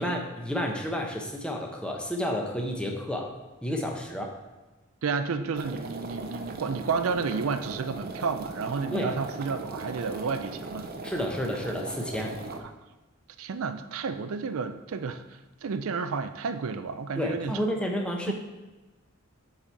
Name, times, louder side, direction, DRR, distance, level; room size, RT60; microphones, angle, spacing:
voice 1, 0.0-3.4 3.6-4.3 8.9-9.1 11.0-12.4 17.1-18.3, equal, 5° left, 1 dB, 0.8 m, -30 dB
voice 2, 5.0-10.9 12.5-12.6 13.4-15.2 15.6-17.6 18.3-18.4, right 5 dB, 85° right, 10 dB, 0.5 m, -31 dB
sound 1, 5.6-12.6, right 2 dB, 45° right, 0.6 m, -39 dB
7.5 x 4.2 x 4.6 m, 1.1 s
head